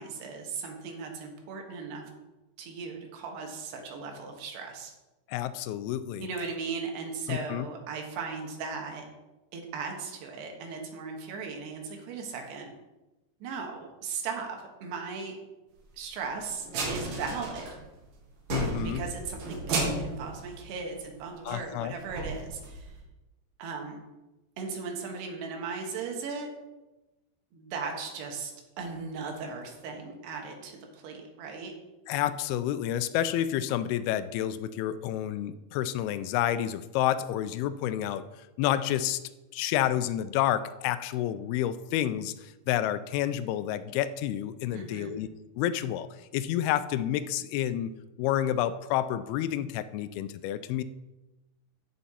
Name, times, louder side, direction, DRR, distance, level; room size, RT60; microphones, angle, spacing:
voice 1, 0.0-2.0 2.6-4.9 6.2-9.1 9.5-12.7 13.4-15.4 16.0-17.7 18.8-22.9 23.6-24.0 24.6-26.5 27.5-28.5 28.8-31.7 44.7-45.1, right 5 dB, 90° right, 2 dB, 3.5 m, -37 dB
voice 2, 5.3-6.3 7.3-7.7 18.5-19.0 21.5-21.9 32.1-38.2 38.6-39.2 39.5-45.3 45.6-46.1 46.3-47.9 48.2-50.8, left 11 dB, 85° left, 13 dB, 2.4 m, -29 dB
sound 1, 16.6-18.1 18.4-21.2 21.5-21.6 22.0-23.0, right 2 dB, 70° right, 3.6 m, -33 dB
14.5 x 5.7 x 4.3 m, 1.1 s
omnidirectional pair, 4.7 m